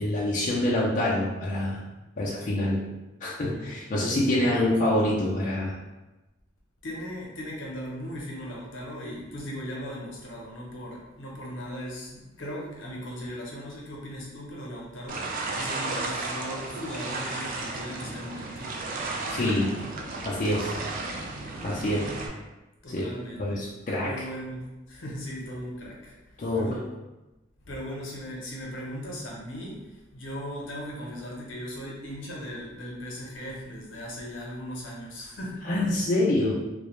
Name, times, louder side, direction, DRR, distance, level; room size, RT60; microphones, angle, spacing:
voice 1, 0.0-1.8 2.2-3.0 3.2-5.8 19.3-19.8 20.2-20.8 21.6-22.1 22.9-23.0 23.4-24.1 26.4-26.8 35.7-36.5, left 1 dB, 40° left, -6 dB, 0.4 m, -26 dB
voice 2, 4.3-4.8 6.8-18.7 22.8-23.6 24.0-26.9 27.6-35.6, equal, 75° left, -3 dB, 0.7 m, -38 dB
sound 1, 15.1-22.3, right 3 dB, 45° right, 0.3 m, -34 dB
2.3 x 2.0 x 2.9 m, 1.1 s
head